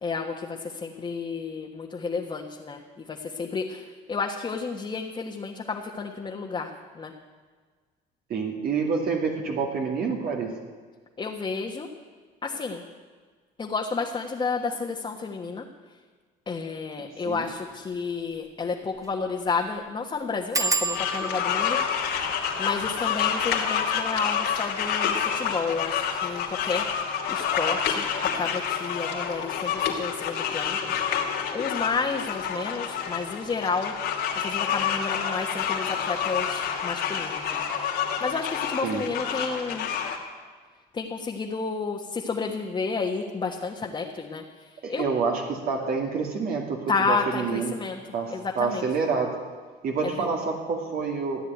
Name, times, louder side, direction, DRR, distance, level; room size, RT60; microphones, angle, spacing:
voice 1, 0.0-7.1 11.2-11.9 12.4-12.8 13.6-15.6 16.5-22.2 22.6-26.8 27.3-28.1 28.3-30.8 31.5-33.9 34.4-37.6 38.2-39.9 40.9-44.4 44.9-45.0 46.9-48.0 48.3-48.8 50.2-50.3, left 4 dB, 30° left, 0 dB, 1.4 m, -31 dB
voice 2, 8.3-10.5 17.2-17.5 38.8-39.0 44.8-47.7 48.1-49.4 49.8-51.5, right 5 dB, 60° right, 1 dB, 2.3 m, -28 dB
sound 1, 17.4-17.6 18.0-18.1 18.3-18.4 19.0-19.2 19.5-19.6 20.5-25.8 26.5-27.0 27.3-27.7 27.9-28.0, right 3 dB, 20° right, 1.1 m, -34 dB
sound 2, 20.9-40.2, left 7 dB, 75° left, 2.8 m, -28 dB
15.5 x 9.8 x 9.4 m, 1.5 s
cardioid pair, 110°, 17 cm